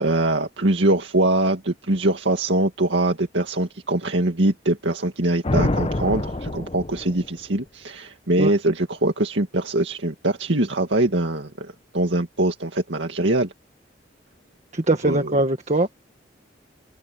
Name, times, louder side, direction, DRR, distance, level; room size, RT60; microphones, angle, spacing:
voice 1, 0.0-13.5 15.0-15.3, right 2 dB, 85° right, 2.1 m, -23 dB
sound 1, 5.4-7.4, left 2 dB, 30° left, 0.7 m, -26 dB
voice 2, 14.7-15.9, right 2 dB, 40° right, 1.6 m, -21 dB
head